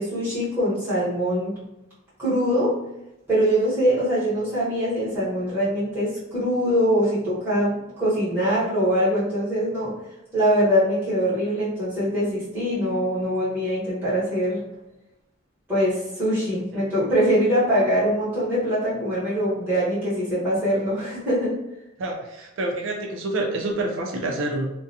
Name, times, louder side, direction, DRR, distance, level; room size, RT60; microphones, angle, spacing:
voice 1, 0.0-1.6 2.2-2.7 3.3-9.9 10.3-14.6 15.7-21.6, equal, 10° right, -13 dB, 1.2 m, -23 dB
voice 2, 22.0-24.7, right 2 dB, 75° right, 0 dB, 0.5 m, -27 dB
2.5 x 2.2 x 2.6 m, 0.89 s
head